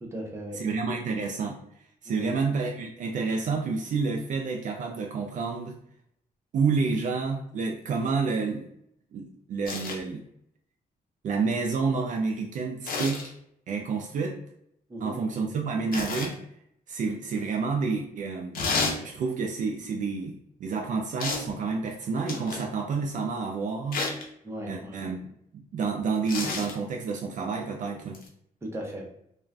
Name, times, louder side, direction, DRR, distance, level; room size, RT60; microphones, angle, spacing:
voice 1, 0.0-0.6 2.0-2.3 14.9-15.6 24.4-25.0 28.6-29.0, right 1 dB, 15° right, -1 dB, 0.7 m, -37 dB
voice 2, 0.6-1.6 2.0-5.8 6.5-8.7 9.1-10.2 11.2-13.2 13.7-14.4 15.0-16.4 16.9-24.0 24.7-25.2 25.5-28.2, right 4 dB, 60° right, 2 dB, 0.4 m, -29 dB
sound 1, 9.6-10.0 12.8-13.3 15.9-16.3 18.5-19.0 21.2-21.5 22.3-22.7 23.9-24.2 26.3-26.7 28.1-28.3, left 3 dB, 70° left, 0.6 m, -30 dB
2.4 x 2.2 x 3.3 m, 0.73 s
cardioid pair, 125°, 15 cm